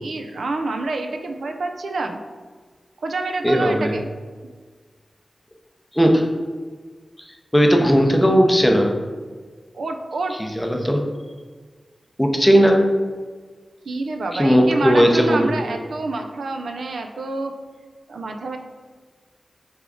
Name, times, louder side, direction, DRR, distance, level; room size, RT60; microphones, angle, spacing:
voice 1, 0.0-2.2 3.0-4.1 9.7-10.4 13.8-17.6 18.1-18.6, right 3 dB, 90° right, 4 dB, 0.3 m, -27 dB
voice 2, 3.4-3.9 5.9-6.3 7.5-8.9 10.4-11.1 12.2-12.8 14.3-15.5, equal, 5° left, 2 dB, 0.6 m, -16 dB
3.6 x 3.4 x 3.6 m, 1.5 s
wide cardioid pair, 65°, 0 cm